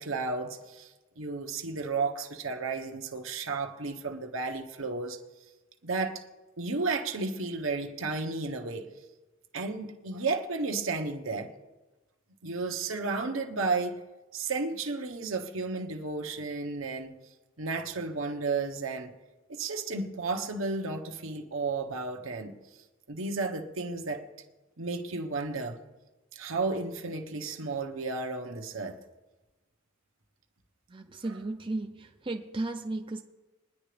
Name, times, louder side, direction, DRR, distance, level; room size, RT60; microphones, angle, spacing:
voice 1, 0.0-5.2 5.8-6.2 6.6-8.9 9.5-11.5 12.4-14.0 14.3-17.1 17.6-19.1 19.5-22.5 23.1-24.2 24.8-25.8 26.3-29.0 31.2-31.4, right 3 dB, 80° right, 1.2 m, -33 dB
voice 2, 30.9-31.9 32.3-33.2, right 2 dB, 25° right, 0.6 m, -34 dB
22.0 x 10.5 x 3.4 m
head